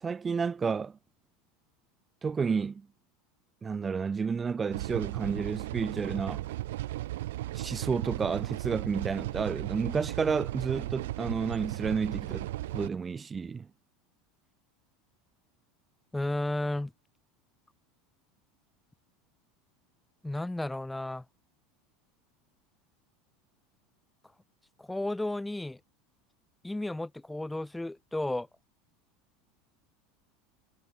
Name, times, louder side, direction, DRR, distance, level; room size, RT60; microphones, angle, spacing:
voice 1, 0.0-0.9 2.2-2.9 3.6-6.5 7.5-13.7, right 5 dB, 20° right, 1.3 m, -31 dB
sound 1, 4.7-12.9, right 16 dB, 85° right, 6.0 m, -36 dB
voice 2, 16.1-16.9 20.2-21.2 24.8-25.8 26.6-28.5, left 1 dB, 5° left, 4.5 m, -33 dB
supercardioid pair, 120°, 0 cm